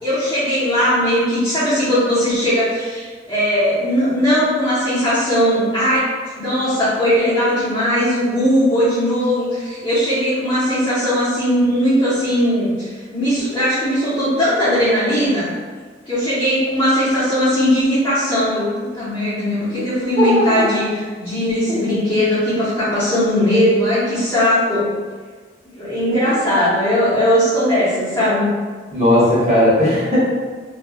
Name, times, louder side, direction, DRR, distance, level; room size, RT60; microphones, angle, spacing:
voice 1, 0.0-6.0 6.4-15.5 16.0-24.9 25.7-28.5, equal, 15° left, -16 dB, 0.9 m, -18 dB
voice 2, 20.2-20.6 26.1-26.2 28.9-30.2, left 1 dB, 35° right, -10 dB, 1.1 m, -16 dB
3.2 x 2.3 x 2.2 m, 1.5 s
head